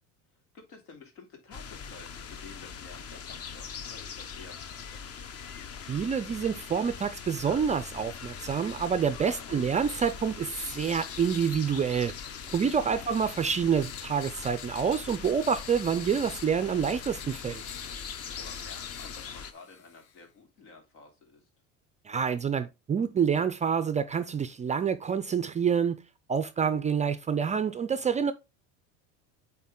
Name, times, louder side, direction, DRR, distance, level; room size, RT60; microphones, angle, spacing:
voice 1, 0.5-5.2 9.3-9.7 12.9-13.1 18.4-21.5, left 4 dB, 80° left, 3.0 m, -51 dB
sound 1, 1.5-19.5, left 6 dB, 40° left, 0.7 m, -42 dB
sound 2, 5.4-20.3, left 9 dB, 65° left, 0.9 m, -48 dB
voice 2, 5.9-12.1 12.5-17.6 22.1-26.0 26.3-28.3, right 7 dB, 20° right, 0.3 m, -27 dB
8.4 x 3.8 x 3.7 m
supercardioid pair, 120°, 38 cm